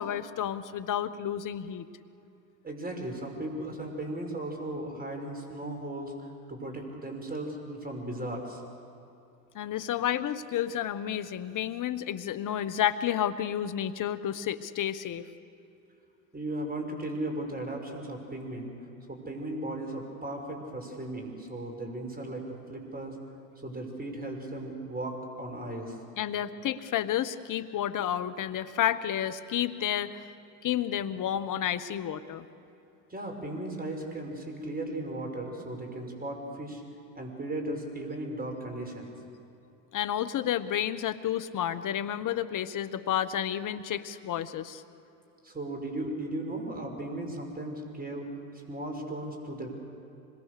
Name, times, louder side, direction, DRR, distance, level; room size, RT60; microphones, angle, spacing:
voice 1, 0.0-1.9 9.5-15.2 26.2-30.2 30.6-32.4 39.9-44.8, left 10 dB, 45° left, 12 dB, 1.2 m, -31 dB
voice 2, 2.6-8.6 16.3-18.7 19.1-23.2 23.6-26.0 33.1-36.8 37.1-39.1 45.4-48.3 48.7-49.7, right 1 dB, 20° right, 3 dB, 5.7 m, -36 dB
26.0 x 22.0 x 6.8 m, 2.7 s
hypercardioid pair, 80°, 45 cm